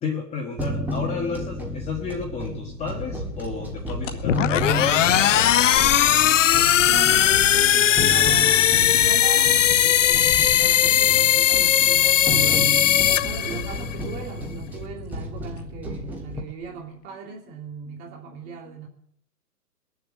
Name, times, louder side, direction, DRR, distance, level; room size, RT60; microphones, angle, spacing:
voice 1, 0.0-5.2 5.4-6.0 10.0-10.3 13.1-13.5 16.7-16.8 17.3-17.6 17.9-18.8, left 5 dB, 10° left, 1.6 m, -34 dB
sound 1, 0.6-16.4, equal, 5° right, 1.5 m, -32 dB
sound 2, 3.3-6.4 6.7-11.2 11.5-14.3 14.5-15.2 15.5-15.8 16.1-16.2 16.5-17.0, left 9 dB, 35° left, 2.0 m, -40 dB
sound 3, 4.2-14.0, left 11 dB, 50° left, 0.5 m, -18 dB
voice 2, 6.8-18.9, right 5 dB, 25° right, 3.0 m, -39 dB
20.5 x 7.4 x 7.6 m
hypercardioid pair, 140°, 50 cm